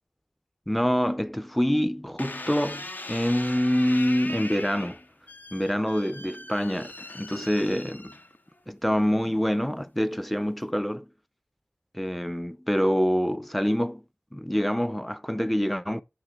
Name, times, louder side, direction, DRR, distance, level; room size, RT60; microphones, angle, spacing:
voice 1, 0.7-5.0 5.5-8.2 8.7-11.1 11.9-14.0 14.3-16.0, equal, 5° left, 0.5 m, -26 dB
sound 1, 2.2-8.6 9.2-9.7, left 2 dB, 50° left, 0.7 m, -40 dB
10.0 x 5.7 x 3.5 m
wide cardioid pair, 40°, 4 cm